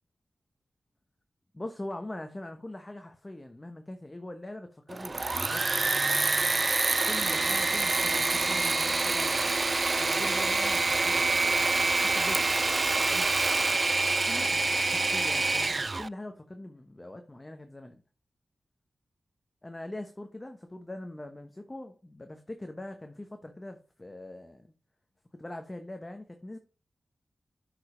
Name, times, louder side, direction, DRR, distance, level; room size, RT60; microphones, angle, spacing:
voice 1, 1.5-6.0 7.1-12.5 13.0-13.5 14.3-18.0 19.6-24.7 25.3-26.6, left 1 dB, 25° left, 1.1 m, -42 dB
Engine / Mechanisms, 4.9-16.1, right 3 dB, 40° right, 0.3 m, -26 dB
7.8 x 5.1 x 5.0 m
cardioid pair, 65°, 0 cm